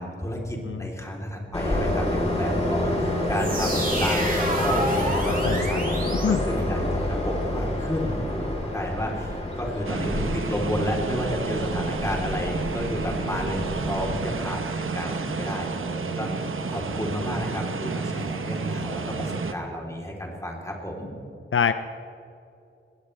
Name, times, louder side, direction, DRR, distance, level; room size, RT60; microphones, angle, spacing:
voice 1, 0.0-21.1, equal, 15° left, -1 dB, 3.7 m, -32 dB
Train, 1.5-14.2, left 1 dB, 30° left, 3.9 m, -28 dB
sound 1, 3.3-7.1, right 1 dB, 40° right, 3.7 m, -30 dB
voice 2, 5.3-5.7 6.2-6.4 21.5-21.7, left 7 dB, 75° left, 11 dB, 0.6 m, -24 dB
sound 2, 9.8-19.5, right 4 dB, 75° right, 1.1 m, -31 dB
21.0 x 18.0 x 3.4 m, 2.7 s
wide cardioid pair, 95°, 21 cm